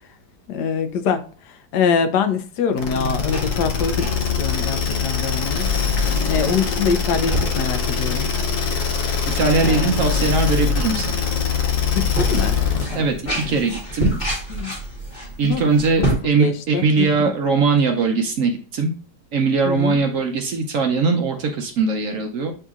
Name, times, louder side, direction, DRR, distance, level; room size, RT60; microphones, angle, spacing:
voice 1, 0.5-4.1 4.4-5.7 6.3-8.3 9.6-10.2 11.9-12.6 12.9-13.1 13.4-13.6 14.1-14.2 14.5-14.7 15.4-15.7 16.0-16.1 16.4-17.1 19.6-20.0, left 6 dB, 80° left, 8 dB, 1.2 m, -24 dB
sound 1, 2.8-13.0, left 6 dB, 60° left, 1.0 m, -22 dB
sound 2, 3.1-16.2, right 1 dB, 30° left, 1.5 m, -30 dB
voice 2, 9.0-11.1 12.9-14.4 15.4-18.9 19.3-22.5, right 4 dB, 65° right, 4 dB, 0.8 m, -21 dB
7.7 x 2.8 x 2.4 m, 0.40 s
omnidirectional pair, 1.8 m